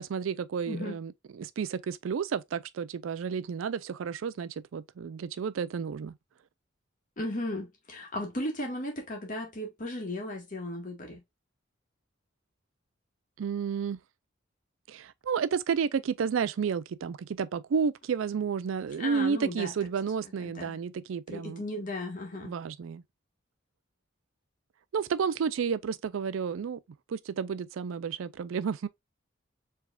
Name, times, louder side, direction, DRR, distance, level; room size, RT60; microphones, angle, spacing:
voice 1, 0.0-6.1 13.4-14.0 14.9-21.6 22.4-23.0 24.9-26.8 27.1-28.9, right 6 dB, 80° right, 0.4 m, -31 dB
voice 2, 7.2-11.2 19.0-19.7 20.4-20.8 21.3-22.5, left 1 dB, 40° left, 1.7 m, -36 dB
4.8 x 3.4 x 2.3 m
head